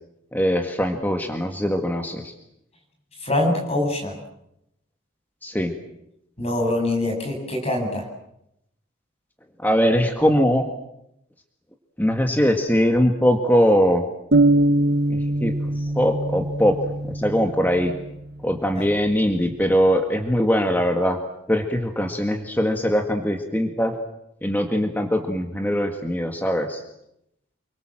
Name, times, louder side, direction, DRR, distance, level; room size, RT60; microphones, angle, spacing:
voice 1, 0.3-2.2 5.4-5.7 9.6-10.6 12.0-14.0 15.1-16.8 17.0-17.9 18.4-21.2 21.5-24.0 24.4-26.8, equal, 10° left, 4 dB, 1.8 m, -21 dB
voice 2, 3.2-4.2 6.4-8.0 18.8-18.9, left 1 dB, 30° left, 1 dB, 7.9 m, -24 dB
sound 1, 14.3-18.1, right 2 dB, 50° right, 1.5 m, -22 dB
29.5 x 23.5 x 7.6 m, 0.80 s
head